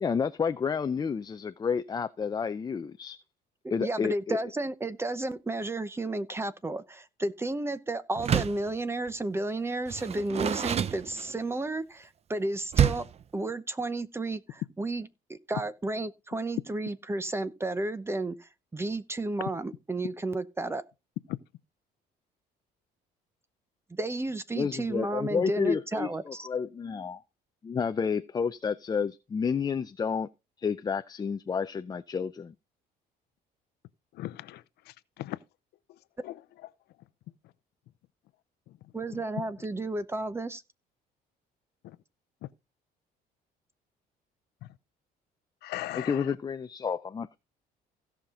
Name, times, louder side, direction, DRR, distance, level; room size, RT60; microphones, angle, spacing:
voice 1, 0.0-3.2 3.7-4.4 24.5-27.2 27.6-30.3 30.6-32.5 46.0-47.4, left 6 dB, 25° left, 0.5 m, -30 dB
voice 2, 3.8-13.0 13.3-20.8 23.9-26.5 38.9-40.6, right 2 dB, 15° right, 0.9 m, -32 dB
Door, 8.2-8.7 9.9-11.6 12.7-13.2, right 9 dB, 40° right, 0.6 m, -27 dB
voice 3, 34.1-35.4 36.2-36.4 38.7-38.8 39.1-39.2 41.8-42.0 44.6-44.7 45.6-46.3, left 16 dB, 75° left, 0.7 m, -39 dB
16.5 x 5.8 x 3.8 m
cardioid pair, 110°, 17 cm